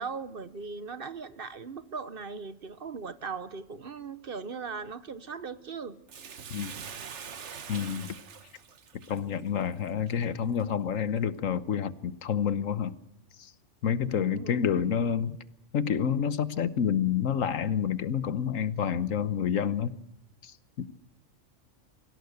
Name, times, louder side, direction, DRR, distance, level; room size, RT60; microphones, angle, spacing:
voice 1, 0.0-6.0 6.8-6.9 14.1-14.7, right 5 dB, 50° right, 1.1 m, -39 dB
Bathtub (filling or washing), 6.1-10.6 11.2-11.3, right 7 dB, 65° right, 1.4 m, -44 dB
voice 2, 7.7-8.2 8.9-13.0 13.4-13.5 13.8-15.4 15.7-19.9 20.4-20.9, left 8 dB, 85° left, 1.4 m, -28 dB
24.0 x 17.0 x 8.0 m
omnidirectional pair, 1.3 m